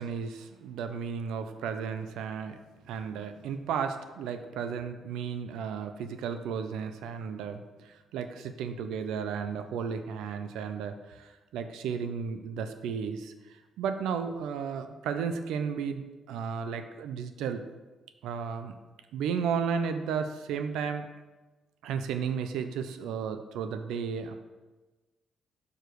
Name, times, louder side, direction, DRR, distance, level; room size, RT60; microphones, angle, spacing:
voice 1, 0.0-2.6 2.8-17.6 18.2-18.7 19.1-21.1 21.8-24.3, right 6 dB, 85° right, 8 dB, 0.4 m, -34 dB
6.5 x 4.8 x 4.5 m, 1.2 s
cardioid pair, 90°, 0 cm